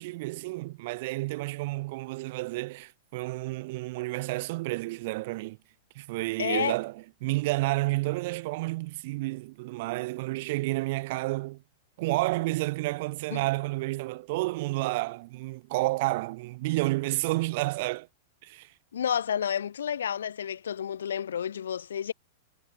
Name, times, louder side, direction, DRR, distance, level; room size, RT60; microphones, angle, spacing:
voice 1, 0.0-5.6 5.9-11.6 12.0-18.1 18.4-18.7, right 21 dB, 50° right, 0.6 m, -30 dB
voice 2, 6.4-6.8 13.3-13.4 18.9-22.1, left 8 dB, 70° left, 0.4 m, -30 dB
figure-of-eight pair, 95°, 0 cm